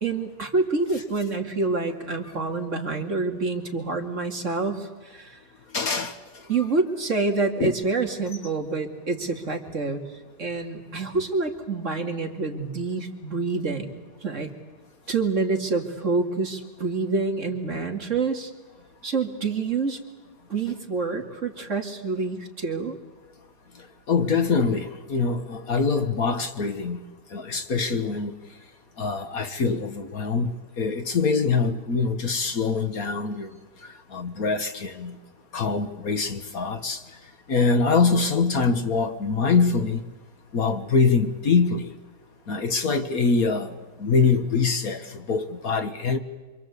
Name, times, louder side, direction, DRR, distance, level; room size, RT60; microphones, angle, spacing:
voice 1, 0.0-5.4 6.5-10.0 10.4-14.5 15.1-18.5 19.0-20.0 20.5-23.0, right 3 dB, 45° right, 2.5 m, -27 dB
voice 2, 5.7-6.1 7.6-7.7 24.1-27.0 27.3-28.3 29.0-30.5 30.8-33.5 34.1-35.2 35.5-37.0 37.5-40.0 40.5-41.9 42.5-43.7 44.0-46.2, left 4 dB, 55° left, 1.7 m, -24 dB
27.5 x 24.5 x 8.3 m
omnidirectional pair, 1.9 m